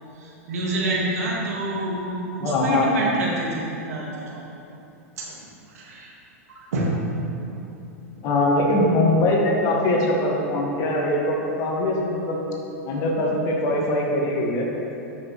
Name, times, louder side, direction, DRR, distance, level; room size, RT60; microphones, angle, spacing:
voice 1, 0.2-4.4 5.2-5.5 5.7-6.1 6.5-7.1, right 2 dB, 75° right, -3 dB, 1.9 m, -28 dB
voice 2, 2.4-3.1 8.2-12.4 12.9-14.7, left 1 dB, 40° left, -2 dB, 1.8 m, -22 dB
11.5 x 6.0 x 3.3 m, 2.8 s
hypercardioid pair, 105°, 8 cm